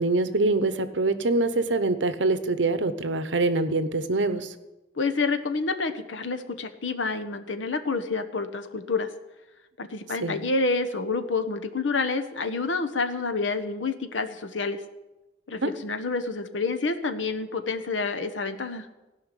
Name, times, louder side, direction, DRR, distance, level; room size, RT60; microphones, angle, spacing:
voice 1, 0.0-4.5 10.2-10.4 15.6-15.7, right 2 dB, 75° right, 11 dB, 1.0 m, -24 dB
voice 2, 5.0-9.1 9.8-14.8 15.5-18.9, left 3 dB, 90° left, 8 dB, 1.1 m, -28 dB
16.5 x 5.7 x 10.0 m, 1.1 s
head